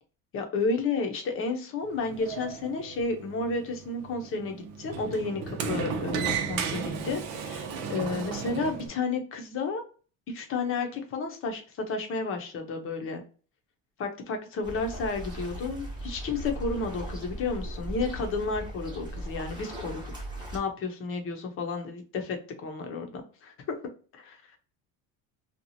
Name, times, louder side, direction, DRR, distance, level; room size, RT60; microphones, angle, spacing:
voice 1, 0.3-9.8 10.3-13.2 14.0-20.0 20.5-23.8 24.2-24.3, left 4 dB, 40° left, 5 dB, 0.7 m, -32 dB
Sliding door, 1.8-8.9, right 6 dB, 75° right, 0.7 m, -34 dB
sound 1, 14.6-20.6, equal, 15° right, 0.8 m, -38 dB
2.8 x 2.3 x 2.7 m, 0.37 s
cardioid pair, 145°, 35 cm